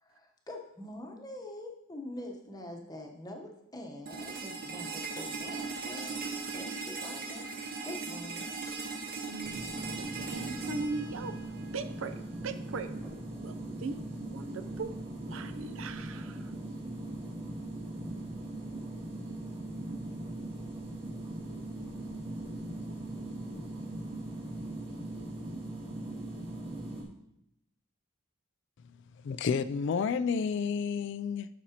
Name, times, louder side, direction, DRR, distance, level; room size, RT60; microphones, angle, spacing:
voice 1, 0.0-6.2 6.5-7.5 7.8-8.6, left 1 dB, 20° left, 2 dB, 0.9 m, -44 dB
sound 1, 4.1-12.0, right 4 dB, 45° right, 1.1 m, -39 dB
voice 2, 9.3-9.6 10.0-11.4 11.7-13.0 13.4-14.0 14.3-15.0 15.2-16.5, right 3 dB, 70° right, 11 dB, 0.5 m, -39 dB
sound 2, 9.4-27.0, right 1 dB, 25° right, 2.2 m, -40 dB
voice 3, 29.2-31.5, left 6 dB, 60° left, 13 dB, 0.3 m, -30 dB
11.5 x 6.1 x 2.9 m, 0.80 s
head